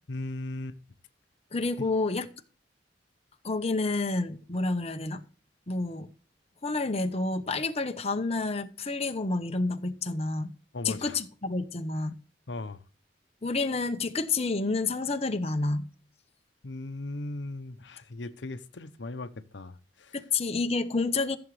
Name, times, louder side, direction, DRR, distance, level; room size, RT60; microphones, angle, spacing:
voice 1, 0.1-0.8 10.7-11.2 12.5-12.8 16.6-20.2, left 2 dB, 75° left, 0.8 m, -38 dB
voice 2, 1.5-2.3 3.4-5.2 5.7-6.1 6.6-10.5 10.8-12.1 13.4-15.9 20.1-21.4, left 3 dB, 35° left, 0.9 m, -29 dB
15.0 x 7.1 x 3.2 m
head